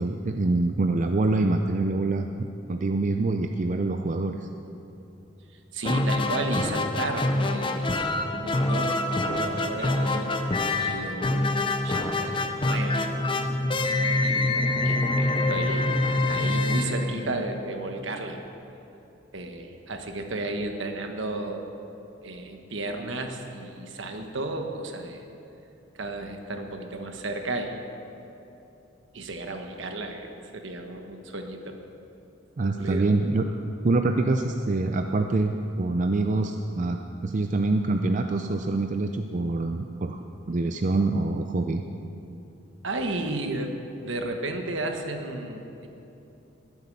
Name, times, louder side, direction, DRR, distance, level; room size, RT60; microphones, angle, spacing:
voice 1, 0.0-2.3 2.7-4.5 32.6-33.5 33.8-41.8, right 2 dB, 40° right, 5 dB, 0.5 m, -25 dB
voice 2, 5.7-8.0 8.3-10.4 10.7-13.0 13.3-13.4 14.2-15.9 16.3-18.4 19.3-21.7 22.2-25.2 25.9-27.7 29.1-31.8 32.6-33.1 42.8-43.8 44.0-45.9, right 2 dB, 70° right, 4 dB, 1.3 m, -33 dB
sound 1, 5.8-17.7, left 2 dB, 25° left, 0.7 m, -26 dB
20.5 x 8.1 x 5.4 m, 2.9 s
head